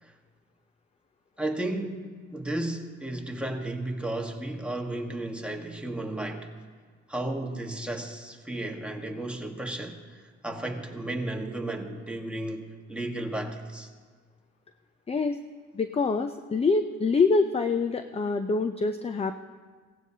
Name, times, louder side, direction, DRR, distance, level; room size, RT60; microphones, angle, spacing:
voice 1, 1.4-2.0 2.3-6.5 7.1-13.9, right 1 dB, 5° right, 1 dB, 1.4 m, -33 dB
voice 2, 15.1-15.4 15.7-19.4, left 4 dB, 20° left, 8 dB, 0.4 m, -25 dB
16.5 x 15.5 x 2.8 m, 1.5 s
cardioid pair, 90°, 30 cm